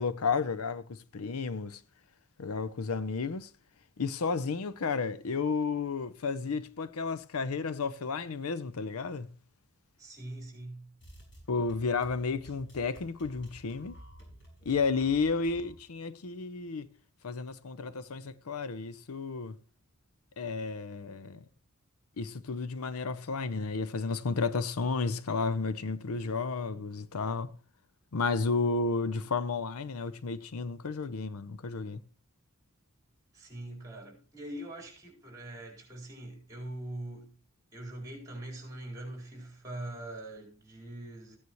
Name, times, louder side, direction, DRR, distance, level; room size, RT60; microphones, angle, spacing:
voice 1, 0.0-1.8 2.4-3.5 4.0-9.3 11.5-14.0 14.7-16.9 17.2-19.6 20.4-21.4 22.2-27.6 28.1-32.0, left 4 dB, 80° left, 0.6 m, -32 dB
voice 2, 10.0-10.9 33.3-37.3 37.7-41.4, right 1 dB, 15° right, 4.2 m, -43 dB
sound 1, 11.0-15.8, equal, 55° left, 6.1 m, -52 dB
15.0 x 9.5 x 3.1 m
head